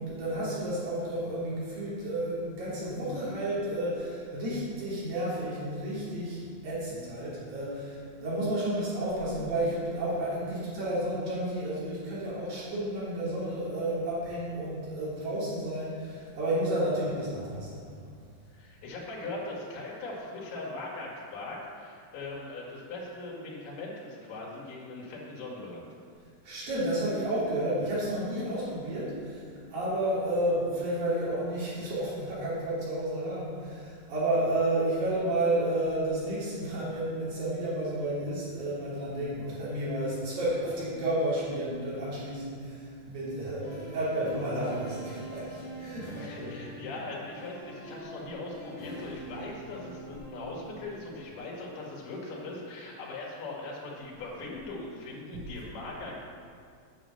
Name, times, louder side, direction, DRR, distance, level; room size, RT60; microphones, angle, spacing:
voice 1, 0.0-17.8 26.4-29.4 29.7-42.8 43.1-46.7, right 1 dB, 65° right, -8 dB, 4.7 m, -31 dB
voice 2, 18.5-25.9 46.2-56.2, left 2 dB, 85° left, -4 dB, 3.8 m, -40 dB
sound 1, 43.6-51.0, right 1 dB, 10° left, 2.3 m, -44 dB
9.3 x 6.5 x 6.9 m, 2.3 s
omnidirectional pair, 4.3 m